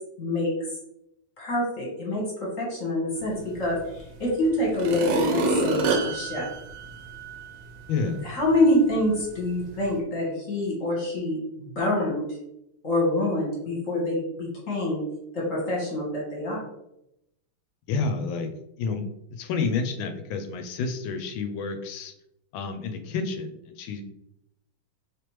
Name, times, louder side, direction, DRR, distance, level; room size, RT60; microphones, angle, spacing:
voice 1, 0.2-0.5 1.4-6.5 8.0-12.2 12.8-15.0 15.3-16.6, left 1 dB, 45° left, -4 dB, 1.3 m, -26 dB
sound 1, 4.0-4.1 4.7-7.5 8.0-8.1, right 3 dB, 75° right, 1.2 m, -27 dB
voice 2, 7.9-8.3 17.9-18.5 18.8-19.0 19.3-22.1 22.5-24.0, left 4 dB, 80° left, 6 dB, 1.3 m, -29 dB
3.4 x 3.2 x 3.0 m, 0.83 s
omnidirectional pair, 2.2 m